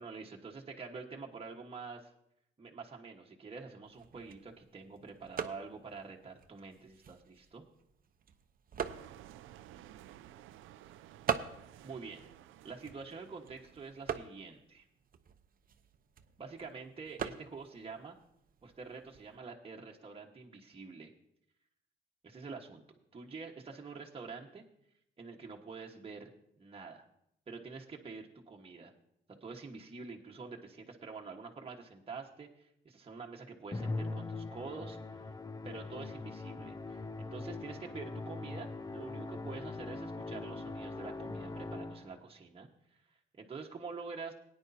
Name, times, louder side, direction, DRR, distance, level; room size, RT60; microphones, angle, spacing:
voice 1, 0.0-2.1 2.6-7.6 11.8-12.3 12.6-14.8 16.4-18.2 18.6-21.1 22.2-22.8 23.1-24.6 25.2-26.3 26.6-27.1 27.5-28.9 29.3-35.3 35.6-43.0 43.3-44.3, right 4 dB, 30° right, 0 dB, 1.5 m, -47 dB
sound 1, 3.8-19.4, right 8 dB, 45° right, 0.8 m, -44 dB
sound 2, 8.8-14.4, right 12 dB, 85° right, 0.5 m, -55 dB
Musical instrument, 33.7-42.2, left 3 dB, 20° left, 0.6 m, -41 dB
18.0 x 9.9 x 2.8 m, 0.75 s
cardioid pair, 90°, 20 cm